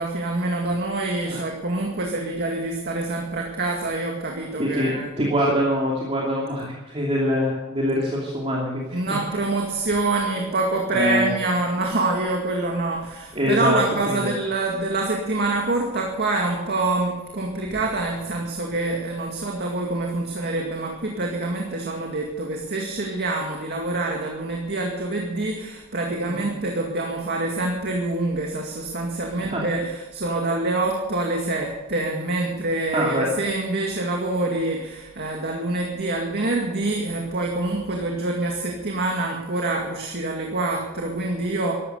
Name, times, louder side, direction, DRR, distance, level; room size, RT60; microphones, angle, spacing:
voice 1, 0.0-5.1 8.9-41.7, right 2 dB, 50° right, 0 dB, 2.1 m, -26 dB
voice 2, 4.6-9.0 9.3-9.4 10.9-11.3 13.3-13.8 14.1-14.3 26.3-26.5 29.4-29.6 32.9-33.3, equal, 30° right, -4 dB, 2.7 m, -24 dB
14.0 x 12.5 x 6.7 m, 1.1 s
head